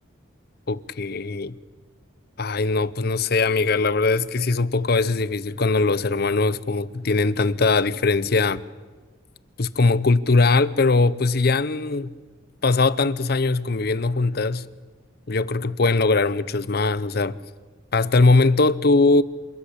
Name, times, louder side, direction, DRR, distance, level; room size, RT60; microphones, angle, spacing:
voice 1, 0.7-1.6 2.4-8.6 9.6-12.1 12.6-14.7 15.3-17.4 17.9-19.2, left 3 dB, 55° left, 0.7 m, -20 dB
28.0 x 13.5 x 8.4 m
head